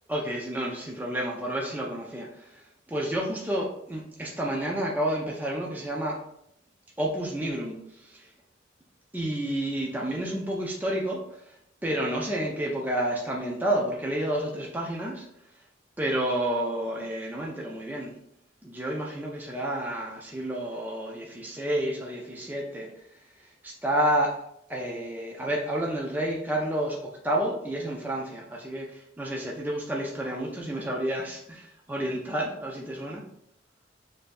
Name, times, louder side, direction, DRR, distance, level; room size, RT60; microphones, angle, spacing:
voice 1, 0.1-2.6 2.9-6.2 7.0-8.3 9.1-11.2 11.8-15.3 16.0-18.1 18.6-22.9 23.6-24.3 24.7-33.2, right 1 dB, 10° right, -2 dB, 0.4 m, -30 dB
6.4 x 2.6 x 2.5 m, 0.76 s
head